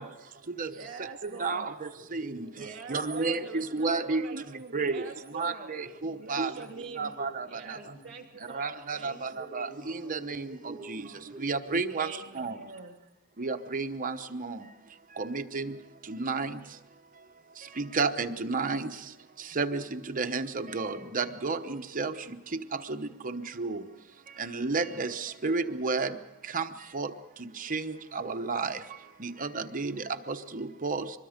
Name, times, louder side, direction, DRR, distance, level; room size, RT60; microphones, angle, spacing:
voice 1, 0.0-0.9 1.9-3.1 4.6-4.7 5.8-8.2 9.0-11.5, right 2 dB, 15° right, -8 dB, 6.4 m, -50 dB
voice 2, 0.7-1.7 2.5-5.7 6.0-7.1 7.5-9.4 11.9-13.0, right 4 dB, 55° right, 4 dB, 2.8 m, -44 dB
voice 3, 1.4-1.7 2.1-2.4 2.9-4.4 4.7-5.0 5.3-6.5 7.0-7.5 8.5-9.7 10.1-11.0 11.4-12.1 12.4-12.5 13.4-14.6 15.2-15.7 16.1-16.5 17.8-18.9 19.6-22.1 22.9-23.8 24.4-26.1 26.5-26.7 26.9-27.1 27.7-27.8 28.1-28.8 29.2-30.0 30.3-31.0, right 4 dB, 40° right, 7 dB, 0.9 m, -31 dB
24.5 x 21.5 x 5.1 m, 0.97 s
head